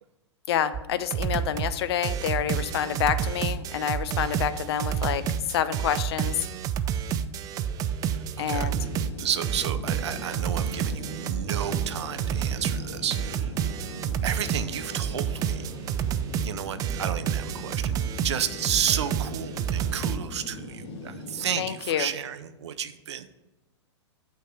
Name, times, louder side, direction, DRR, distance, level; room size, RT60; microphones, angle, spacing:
voice 1, 0.5-6.4 8.4-8.8 21.6-22.1, left 9 dB, 60° left, 14 dB, 0.6 m, -28 dB
sound 1, 0.7-0.8 1.1-1.7 2.0-20.2, right 9 dB, 25° right, 0.4 m, -29 dB
voice 2, 8.1-8.9 9.2-13.5 14.2-15.7 16.4-17.9 18.2-23.3, right 9 dB, 70° right, 11 dB, 0.6 m, -32 dB
sound 2, 8.7-21.7, left 2 dB, 35° left, 1.8 m, -41 dB
8.7 x 3.5 x 6.0 m, 1.0 s
hypercardioid pair, 115°, 15 cm